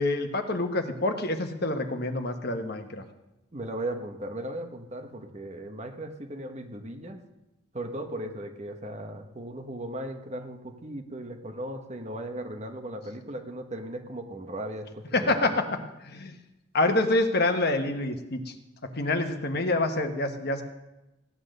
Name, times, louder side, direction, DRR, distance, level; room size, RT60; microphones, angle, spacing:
voice 1, 0.0-3.0 15.1-15.7 16.0-16.3 16.7-18.5 18.8-20.6, left 2 dB, 55° left, 6 dB, 1.3 m, -27 dB
voice 2, 3.5-7.2 7.7-15.5, right 1 dB, 35° right, 5 dB, 1.3 m, -37 dB
16.0 x 9.9 x 6.6 m, 0.97 s
head